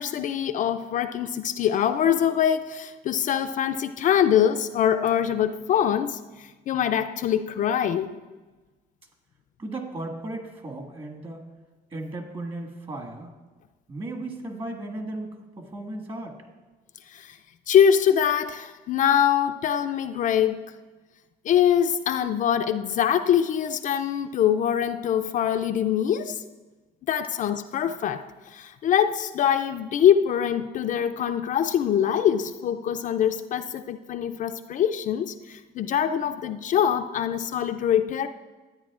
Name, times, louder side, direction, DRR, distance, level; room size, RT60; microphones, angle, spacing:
voice 1, 0.0-8.1 17.1-17.4 17.7-20.6 21.4-26.4 27.1-38.3, left 9 dB, 50° left, 8 dB, 0.4 m, -23 dB
voice 2, 9.6-11.5 11.9-13.3 13.9-16.4, right 2 dB, 30° right, 1 dB, 1.7 m, -35 dB
12.5 x 9.2 x 2.4 m, 1.2 s
cardioid pair, 110°, 17 cm